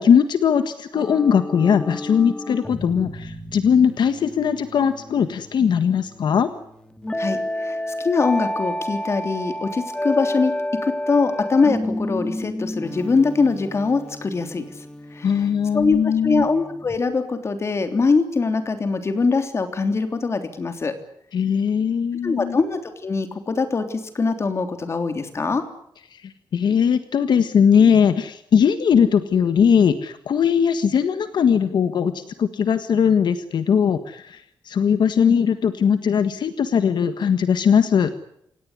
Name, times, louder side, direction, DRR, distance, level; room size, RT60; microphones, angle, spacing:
voice 1, 0.0-6.5 15.2-16.5 21.3-22.6 26.1-38.1, left 7 dB, 70° left, 10 dB, 1.6 m, -19 dB
sound 1, 0.9-17.0, left 1 dB, 10° left, 1.9 m, -31 dB
voice 2, 7.2-10.5 10.8-14.6 15.1-15.4 15.7-20.9 22.2-25.6, left 4 dB, 35° left, 8 dB, 3.4 m, -22 dB
28.0 x 17.5 x 9.8 m, 0.74 s
wide cardioid pair, 150°, 8 cm